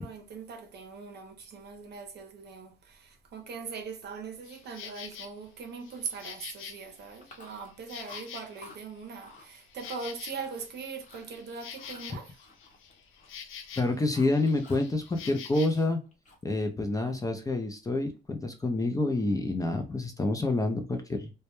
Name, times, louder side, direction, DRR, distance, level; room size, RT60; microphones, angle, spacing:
voice 1, 0.0-12.4, right 5 dB, 55° right, 0.6 m, -41 dB
Insect, 4.4-5.3 5.8-8.8 9.2-14.0 14.3-15.8, left 8 dB, 85° left, 0.4 m, -46 dB
Chewing mastication, 7.2-7.8 8.0-8.8 9.2-9.5 9.8-10.7 11.0-11.3 11.7-13.4 13.6-14.9 15.2-16.6, left 3 dB, 40° left, 0.8 m, -52 dB
voice 2, 13.8-16.0 16.4-21.3, left 2 dB, 15° left, 0.4 m, -28 dB
2.1 x 2.1 x 2.9 m
cardioid pair, 90°, 20 cm